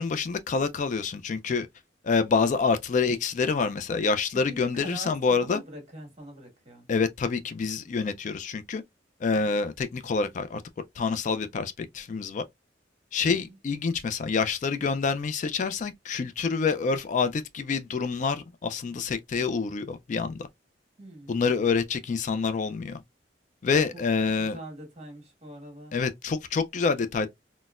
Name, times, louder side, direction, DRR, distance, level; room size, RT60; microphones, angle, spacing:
voice 1, 0.0-1.7 2.0-5.6 6.9-8.8 9.2-10.6 11.0-12.4 13.1-20.5 21.3-23.0 23.6-24.6 25.9-27.3, left 5 dB, 45° left, 0.3 m, -27 dB
voice 2, 4.3-6.9 13.2-13.6 21.0-21.6 23.9-24.0 24.4-26.0, right 1 dB, 35° right, 1.5 m, -44 dB
4.0 x 2.0 x 2.3 m
head